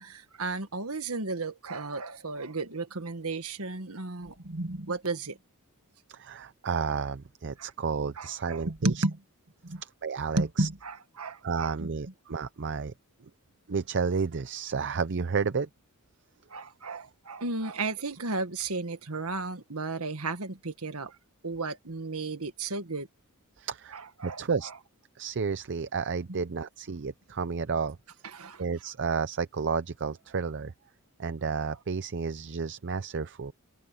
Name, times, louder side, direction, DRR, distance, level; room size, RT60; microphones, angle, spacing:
voice 1, 0.0-5.4 7.6-7.7 8.2-9.2 9.6-9.8 10.4-11.9 16.5-21.2 21.4-23.1 23.9-24.4 26.3-26.4 28.3-28.6, right 3 dB, 70° right, 1.8 m, -33 dB
voice 2, 6.1-9.0 9.8-10.7 11.4-12.9 13.2-13.3 13.7-15.7 23.6-24.0 24.2-24.7 25.2-28.0 28.6-30.7 31.2-33.5, right 5 dB, 55° right, 0.6 m, -31 dB
open air
head